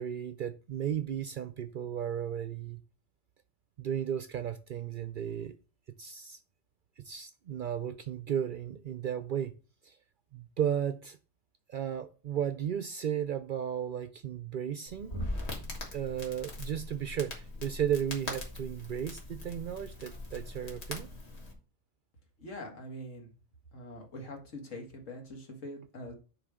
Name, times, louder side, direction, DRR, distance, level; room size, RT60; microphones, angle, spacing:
voice 1, 0.0-2.8 3.8-5.5 6.0-6.4 7.0-9.5 9.8-10.0 10.3-11.2 11.7-15.2 15.9-21.1, right 9 dB, 60° right, 0.5 m, -34 dB
Crackle, 14.9-21.5, left 1 dB, 60° left, 1.9 m, -41 dB
voice 2, 22.4-23.3 23.7-26.1, left 1 dB, 90° left, 2.0 m, -43 dB
9.7 x 3.4 x 4.8 m
omnidirectional pair, 1.3 m